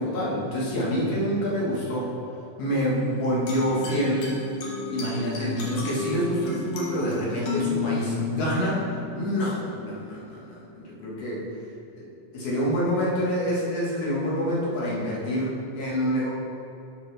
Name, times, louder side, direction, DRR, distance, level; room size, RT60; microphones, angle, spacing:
voice 1, 0.0-2.1 2.6-4.4 4.9-8.8 9.1-11.4 11.9-16.3, equal, 55° left, -6 dB, 2.6 m, -27 dB
sound 1, 2.9-9.9, left 4 dB, 70° left, 2.8 m, -33 dB
9.2 x 7.0 x 3.4 m, 2.8 s
omnidirectional pair, 3.5 m